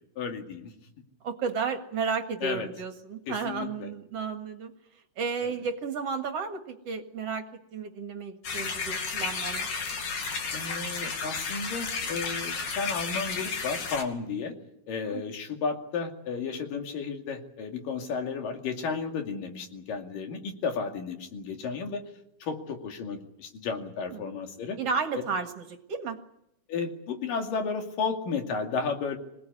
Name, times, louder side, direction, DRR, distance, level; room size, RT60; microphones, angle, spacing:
voice 1, 0.2-0.7 2.4-2.7 3.3-3.9 5.4-5.5 10.5-14.5 14.9-22.0 22.4-24.8 26.7-29.2, left 5 dB, 85° left, 5 dB, 4.1 m, -33 dB
voice 2, 1.2-4.7 5.2-9.8 15.0-15.2 24.1-24.2 24.8-25.6 25.9-26.2, right 5 dB, 55° right, 7 dB, 2.5 m, -33 dB
sound 1, 8.4-14.0, left 5 dB, 65° left, 4.1 m, -32 dB
26.0 x 18.0 x 9.7 m, 0.81 s
omnidirectional pair, 3.8 m